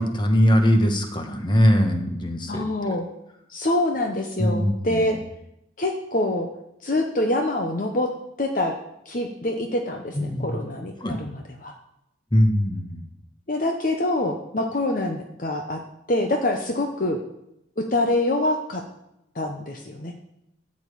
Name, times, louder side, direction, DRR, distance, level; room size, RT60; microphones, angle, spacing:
voice 1, 0.0-2.6 4.4-5.2 10.1-10.6 11.0-11.2 12.3-13.0, equal, 25° left, 5 dB, 1.3 m, -21 dB
voice 2, 2.5-3.1 3.5-5.2 5.8-6.5 6.8-8.1 8.4-8.7 9.1-11.7 13.5-15.8 16.1-17.2 17.8-18.8 19.3-20.1, left 1 dB, 45° left, 3 dB, 0.9 m, -25 dB
13.5 x 5.3 x 8.5 m, 0.83 s
head